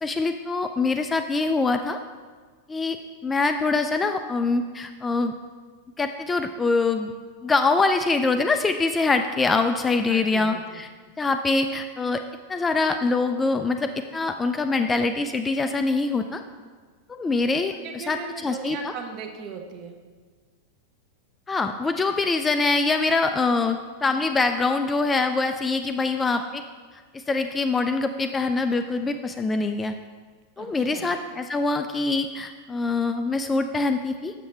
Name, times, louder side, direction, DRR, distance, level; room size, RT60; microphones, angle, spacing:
voice 1, 0.0-2.0 2.7-3.0 3.2-5.3 6.0-7.1 7.4-10.9 11.2-12.2 12.5-16.4 17.1-18.9 21.5-26.6 27.1-29.9 30.6-34.3, left 3 dB, 15° left, 7 dB, 0.3 m, -24 dB
voice 2, 10.0-10.8 17.8-20.0 30.6-31.1, right 5 dB, 35° right, 4 dB, 0.9 m, -38 dB
7.3 x 7.0 x 3.2 m, 1.5 s
figure-of-eight pair, 90°, 0 cm